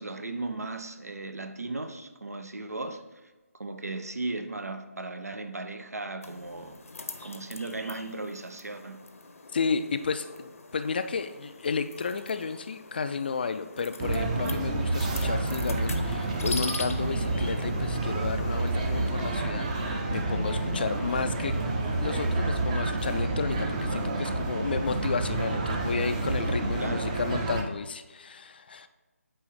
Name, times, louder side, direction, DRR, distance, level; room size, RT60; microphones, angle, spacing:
voice 1, 0.0-3.0 3.6-6.8 7.2-9.0 26.8-27.1, right 2 dB, 80° right, 0.7 m, -36 dB
sound 1, 6.2-19.1, left 3 dB, 65° left, 0.7 m, -43 dB
voice 2, 9.5-21.6 22.0-28.9, left 5 dB, 40° left, 0.3 m, -32 dB
sound 2, 14.0-27.6, right 2 dB, 25° right, 0.6 m, -29 dB
8.6 x 3.1 x 4.7 m
figure-of-eight pair, 155°, 8 cm